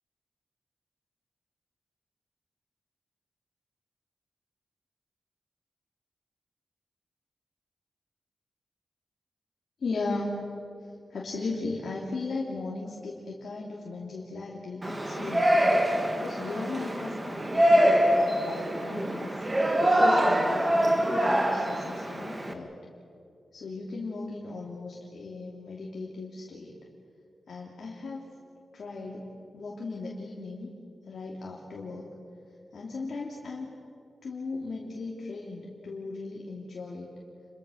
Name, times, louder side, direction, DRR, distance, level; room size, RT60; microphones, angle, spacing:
voice 1, 9.8-10.5 11.1-15.5 16.1-19.3 19.9-22.7 23.5-26.7 27.5-28.2 28.7-30.7 31.1-32.1 32.7-33.7 34.2-37.1, left 3 dB, 65° left, -4 dB, 3.0 m, -37 dB
Yell, 14.8-22.5, equal, 20° right, 2.0 m, -24 dB
29.5 x 23.0 x 6.5 m, 2.5 s
wide cardioid pair, 120°, 0 cm